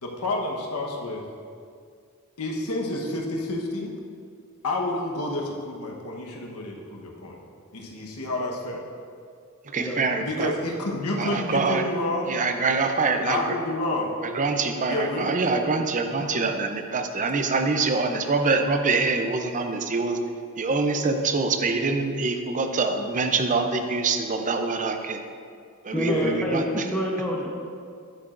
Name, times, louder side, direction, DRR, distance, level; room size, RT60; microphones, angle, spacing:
voice 1, 0.0-1.2 2.4-3.9 4.6-7.4 7.7-8.8 10.2-12.3 13.3-14.3 14.9-15.3 26.0-26.4, left 2 dB, 80° left, 0 dB, 1.2 m, -29 dB
voice 2, 9.7-10.5 11.2-11.8 12.3-13.5 14.2-20.2 20.6-25.2 25.8-26.9, right 4 dB, 35° right, 6 dB, 0.6 m, -25 dB
voice 3, 25.9-27.5, left 1 dB, 5° left, -3 dB, 0.9 m, -27 dB
10.5 x 8.9 x 2.6 m, 2.3 s
head